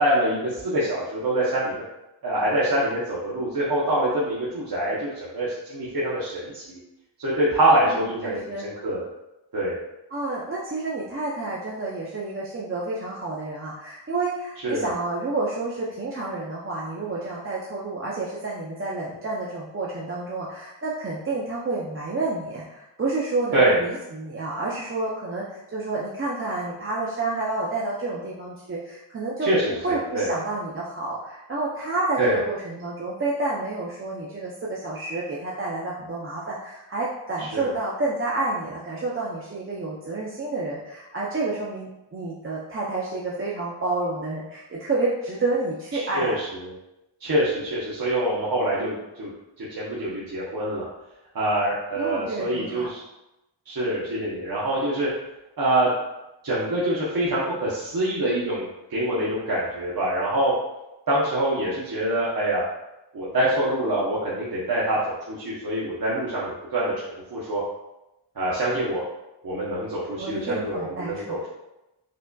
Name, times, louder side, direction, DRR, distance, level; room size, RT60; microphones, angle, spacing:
voice 1, 0.0-1.8 2.2-6.8 7.2-9.1 9.5-9.8 14.6-14.9 23.5-23.8 29.4-30.3 32.2-32.4 37.4-37.7 45.9-46.7 47.2-49.3 49.6-50.9 51.3-53.0 53.7-55.1 55.6-55.9 56.4-58.6 58.9-60.5 61.1-62.6 63.1-67.6 68.4-69.0 69.4-71.5, right 1 dB, 50° right, -8 dB, 0.8 m, -25 dB
voice 2, 8.2-8.7 10.1-29.5 29.8-46.4 52.0-52.9 70.2-71.3, right 2 dB, 30° right, -5 dB, 0.5 m, -29 dB
5.0 x 2.4 x 2.2 m, 0.94 s
wide cardioid pair, 100°, 46 cm